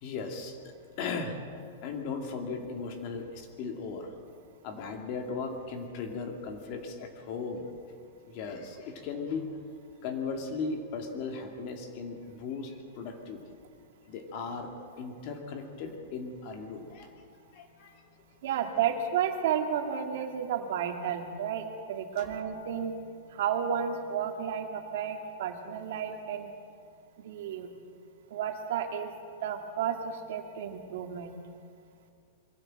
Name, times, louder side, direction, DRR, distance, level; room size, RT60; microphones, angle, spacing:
voice 1, 0.0-1.4 1.8-4.1 4.6-7.7 8.3-9.5 10.0-13.4 14.1-17.1 17.5-18.0 22.2-22.3, left 4 dB, 40° left, 4 dB, 2.5 m, -37 dB
voice 2, 18.4-22.9 23.3-26.5 27.2-27.7 28.3-29.1 29.4-31.4, right 8 dB, 60° right, 4 dB, 2.3 m, -32 dB
22.5 x 15.0 x 7.8 m, 2.3 s
supercardioid pair, 160°, 0 cm